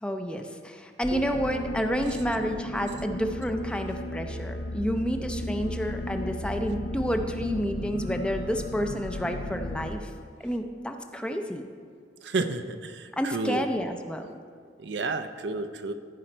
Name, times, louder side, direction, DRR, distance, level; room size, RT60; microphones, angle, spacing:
voice 1, 0.0-10.1 10.4-11.7 13.1-14.3, equal, 5° left, 5 dB, 0.5 m, -30 dB
sound 1, 1.0-9.9, left 1 dB, 70° left, 0.6 m, -34 dB
voice 2, 12.2-13.6 14.8-15.9, right 3 dB, 75° right, 9 dB, 0.5 m, -31 dB
14.5 x 5.0 x 4.4 m, 2.1 s
head